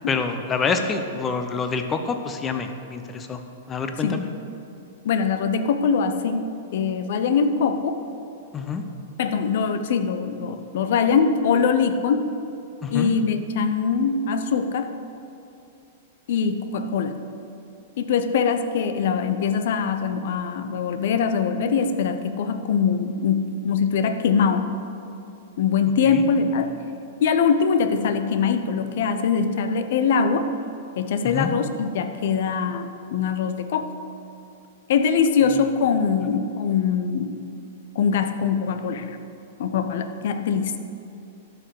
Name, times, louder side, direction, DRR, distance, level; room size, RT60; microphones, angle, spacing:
voice 1, 0.1-3.4 3.7-4.3 8.5-8.8 12.8-13.1 26.0-26.2 31.2-31.5, left 5 dB, 20° left, 7 dB, 0.9 m, -27 dB
voice 2, 5.0-8.0 9.2-12.3 12.9-14.9 16.3-17.2 18.0-24.7 25.6-26.7 27.2-30.5 31.0-33.9 34.9-37.3 37.9-39.2 39.6-40.8, left 6 dB, 60° left, 9 dB, 0.8 m, -22 dB
12.5 x 5.9 x 6.6 m, 2.7 s
figure-of-eight pair, 105°, 0 cm